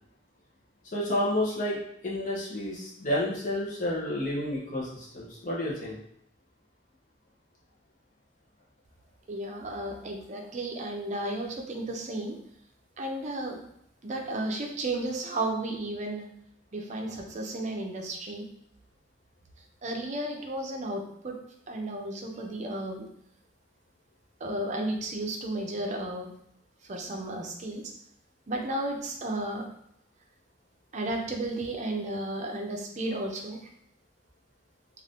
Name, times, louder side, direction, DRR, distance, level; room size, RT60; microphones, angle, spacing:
voice 1, 0.9-6.0, left 1 dB, 45° left, -6 dB, 0.7 m, -30 dB
voice 2, 9.3-12.4 13.0-13.6 14.0-16.3 16.7-18.5 19.8-21.3 21.7-23.1 24.4-26.3 26.9-27.8 28.5-29.7 30.9-33.6, right 1 dB, 40° right, 1 dB, 0.5 m, -33 dB
2.6 x 2.4 x 3.4 m, 0.71 s
head